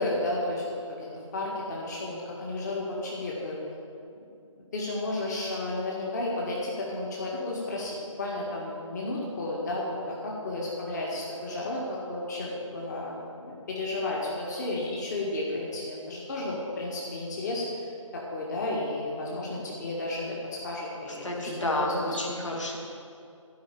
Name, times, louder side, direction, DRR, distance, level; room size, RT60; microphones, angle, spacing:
voice 1, 0.0-3.6 4.7-22.0, left 2 dB, 35° left, -4 dB, 1.8 m, -33 dB
voice 2, 21.1-22.8, left 1 dB, 65° left, -1 dB, 2.4 m, -30 dB
12.5 x 5.7 x 8.6 m, 2.6 s
figure-of-eight pair, 150°, 17 cm